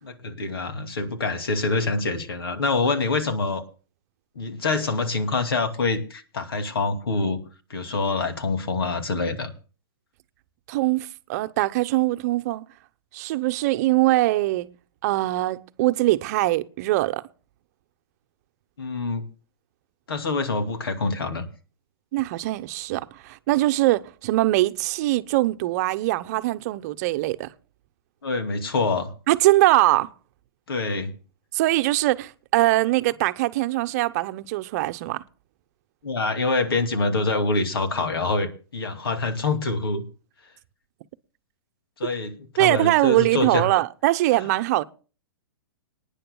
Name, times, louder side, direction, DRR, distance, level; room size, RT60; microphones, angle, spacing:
voice 1, 0.0-3.6 4.4-7.4 7.7-9.5 18.8-19.2 20.1-21.5 28.2-29.1 30.7-31.1 36.0-40.0 42.0-43.7, left 3 dB, 75° left, 2.6 m, -25 dB
voice 2, 10.7-12.6 13.1-14.7 15.0-17.2 22.1-27.5 29.3-30.1 31.5-35.2 42.6-44.8, right 17 dB, 45° right, 0.9 m, -22 dB
26.0 x 10.0 x 2.3 m
hypercardioid pair, 125°, 12 cm